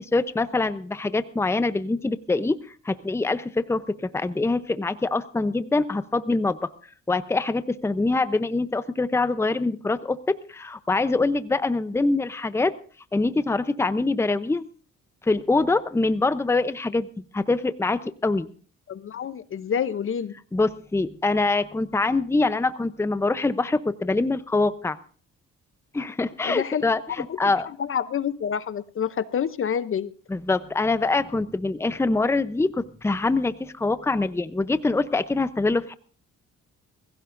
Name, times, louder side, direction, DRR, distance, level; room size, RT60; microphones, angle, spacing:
voice 1, 0.0-2.6 2.8-6.7 7.1-12.7 13.1-14.7 15.2-17.1 17.3-18.5 20.5-25.0 25.9-27.7 30.3-35.9, left 3 dB, 10° left, 13 dB, 0.7 m, -24 dB
voice 2, 18.9-20.3 26.4-26.9 27.3-27.4 27.6-30.1, left 8 dB, 45° left, 15 dB, 0.7 m, -28 dB
22.0 x 16.0 x 2.6 m, 0.41 s
cardioid pair, 90°, 30 cm